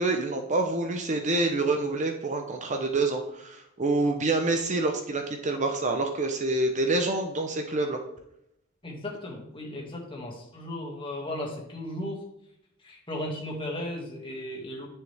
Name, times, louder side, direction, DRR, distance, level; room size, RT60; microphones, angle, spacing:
voice 1, 0.0-8.0, right 2 dB, 35° right, 5 dB, 0.8 m, -27 dB
voice 2, 8.8-12.2 12.8-14.9, left 1 dB, 25° left, -1 dB, 2.2 m, -36 dB
10.0 x 6.4 x 3.5 m, 0.81 s
head